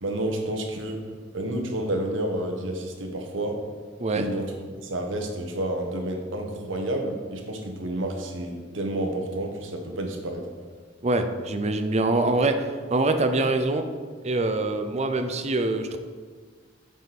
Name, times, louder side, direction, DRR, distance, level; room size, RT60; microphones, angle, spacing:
voice 1, 0.0-1.0 1.3-3.6 4.2-10.4, right 1 dB, 80° right, 3 dB, 1.2 m, -30 dB
voice 2, 11.0-12.6 12.9-13.9 14.2-16.0, right 2 dB, 35° right, 8 dB, 0.6 m, -24 dB
8.8 x 5.1 x 4.2 m, 1.5 s
head